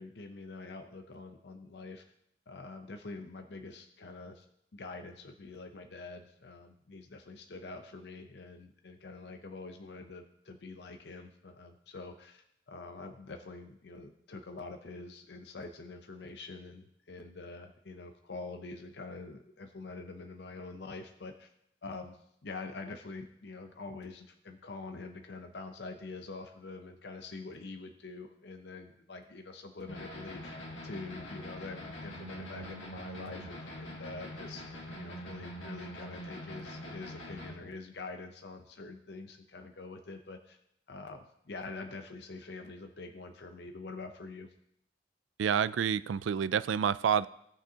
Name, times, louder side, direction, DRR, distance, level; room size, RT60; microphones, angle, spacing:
voice 1, 0.0-2.0 2.5-4.5 4.7-21.5 21.8-30.6 30.8-34.6 35.0-40.6 40.9-44.5, left 3 dB, 60° left, 5 dB, 0.6 m, -45 dB
sound 1, 29.9-37.6, equal, 85° left, 1.6 m, -44 dB
voice 2, 45.4-47.3, right 7 dB, 85° right, 16 dB, 0.3 m, -28 dB
17.0 x 6.1 x 2.8 m, 0.76 s
head